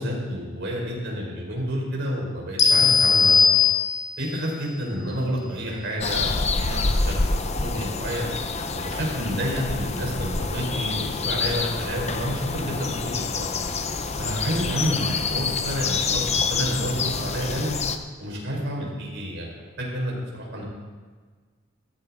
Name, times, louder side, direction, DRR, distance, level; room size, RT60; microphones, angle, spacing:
voice 1, 0.0-3.6 4.2-8.3 8.7-13.5 14.2-17.7 18.2-20.6, equal, 60° right, -2 dB, 4.3 m, -29 dB
sound 1, 2.6-4.3, left 5 dB, 65° left, 1.7 m, -18 dB
sound 2, 6.0-18.0, left 4 dB, 30° left, 0.7 m, -27 dB
15.5 x 14.5 x 3.7 m, 1.5 s
head